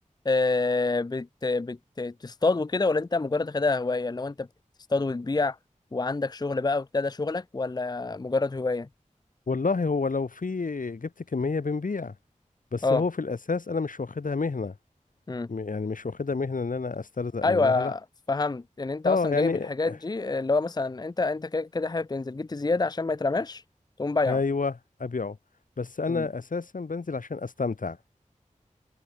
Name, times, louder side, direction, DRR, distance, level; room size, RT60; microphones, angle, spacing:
voice 1, 0.3-4.5 4.9-5.6 5.9-8.9 12.8-13.0 15.3-15.5 17.4-18.0 18.3-23.6 24.0-24.4 26.1-26.3, left 3 dB, 30° left, 0.5 m, -27 dB
voice 2, 9.5-12.1 12.7-14.7 15.5-17.9 19.0-20.0 24.3-24.7 25.0-25.4 25.8-28.0, left 4 dB, 85° left, 1.7 m, -29 dB
wide cardioid pair, 65°, 13 cm